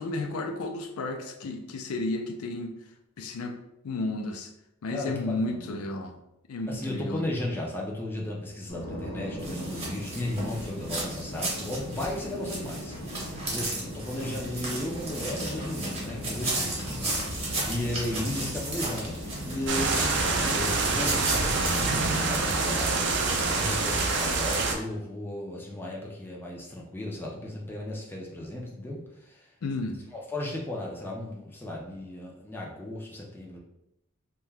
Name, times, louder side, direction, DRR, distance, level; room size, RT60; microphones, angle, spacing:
voice 1, 0.0-2.7 3.2-3.6 3.8-4.5 4.8-6.2 6.5-7.2 18.1-18.2 29.6-30.0, left 2 dB, 80° left, 5 dB, 0.4 m, -32 dB
voice 2, 4.9-5.8 6.7-23.1 23.5-29.5 30.1-33.6, left 1 dB, 10° left, -2 dB, 0.4 m, -35 dB
sound 1, 8.7-23.7, equal, 60° left, 0.9 m, -38 dB
sound 2, 9.4-21.9, right 2 dB, 30° right, 0.8 m, -34 dB
sound 3, 19.7-24.7, right 3 dB, 55° right, 0.4 m, -26 dB
2.7 x 2.2 x 3.2 m, 0.85 s
head